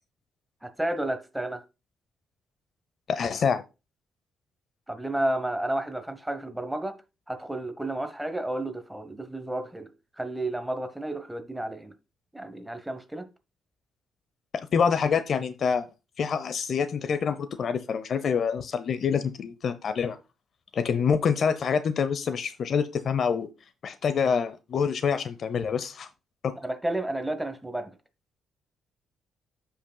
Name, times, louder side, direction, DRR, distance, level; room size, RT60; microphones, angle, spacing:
voice 1, 0.6-1.6 4.9-7.0 7.3-11.9 12.3-13.3 26.6-28.0, right 1 dB, 5° right, 1.1 m, -31 dB
voice 2, 3.1-3.6 14.5-15.9 16.2-20.2 20.7-23.5 23.8-26.1 26.4-26.5, left 6 dB, 55° left, 0.7 m, -26 dB
13.0 x 5.7 x 2.3 m
cardioid pair, 90°, 0 cm